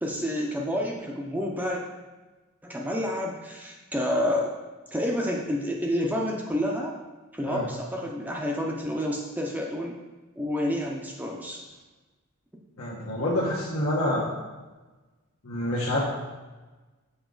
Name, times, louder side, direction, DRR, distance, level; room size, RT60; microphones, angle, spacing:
voice 1, 0.0-1.8 2.6-4.5 4.9-6.9 7.3-10.0 10.4-11.6, left 1 dB, 10° right, -1 dB, 0.5 m, -29 dB
voice 2, 12.8-14.3 15.4-16.0, left 1 dB, 75° left, -7 dB, 1.2 m, -27 dB
7.0 x 4.7 x 3.9 m, 1.2 s
head